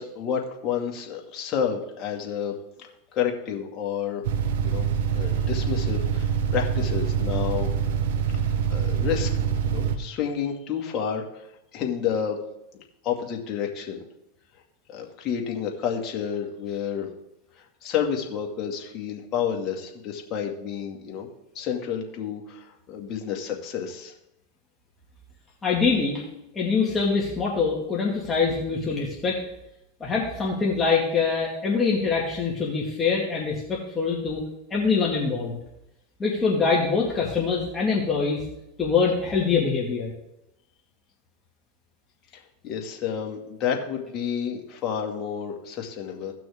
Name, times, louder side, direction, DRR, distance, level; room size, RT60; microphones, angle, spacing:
voice 1, 0.0-2.6 3.1-4.2 4.6-7.7 8.4-11.4 11.7-12.4 13.0-14.0 14.9-17.1 17.8-21.3 21.6-24.1 42.3-46.3, left 8 dB, 40° left, 1 dB, 2.0 m, -30 dB
sound 1, 4.2-10.0, right 7 dB, 75° right, 0.9 m, -25 dB
voice 2, 25.6-26.2 26.5-29.4 30.0-34.4 34.7-35.6 36.2-38.4 38.8-40.1, left 5 dB, 20° left, -4 dB, 2.1 m, -24 dB
16.5 x 6.1 x 3.6 m, 0.86 s
hypercardioid pair, 115°, 0 cm